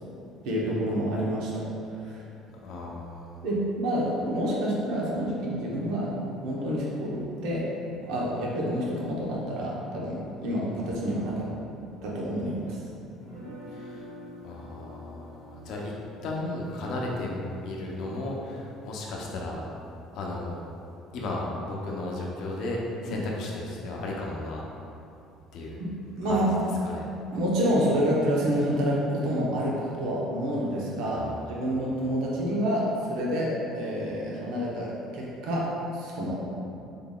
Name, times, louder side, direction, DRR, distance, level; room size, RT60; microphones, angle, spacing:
voice 1, 0.0-1.6 2.0-2.2 3.4-7.7 8.0-11.5 12.0-12.8 13.3-13.5 16.9-17.0 23.1-23.2 25.8-25.9 26.2-26.5 27.3-31.2 31.5-35.7 35.9-36.4, equal, 80° right, -4 dB, 0.7 m, -28 dB
voice 2, 2.6-3.5 13.7-14.1 14.4-15.9 16.2-19.6 20.1-20.6 21.1-24.6 25.5-25.8 26.3-26.5 26.8-27.0 31.1-31.7, left 2 dB, 65° left, -2 dB, 0.5 m, -34 dB
sound 1, 13.2-19.2, equal, 60° right, 1.5 m, -47 dB
3.7 x 3.3 x 2.2 m, 2.7 s
cardioid pair, 110°, 0 cm